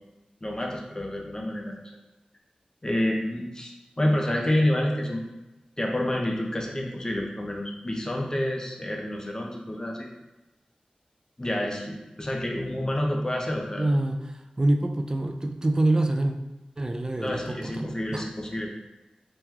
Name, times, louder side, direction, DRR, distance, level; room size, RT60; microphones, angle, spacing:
voice 1, 0.4-1.8 2.8-5.3 5.8-10.1 11.4-13.9 17.2-18.7, left 1 dB, 25° left, 0 dB, 0.6 m, -28 dB
voice 2, 13.8-14.2 14.6-16.3 16.8-18.2, right 1 dB, 30° right, 5 dB, 0.3 m, -25 dB
2.9 x 2.2 x 3.6 m, 1.0 s
wide cardioid pair, 60°, 3 cm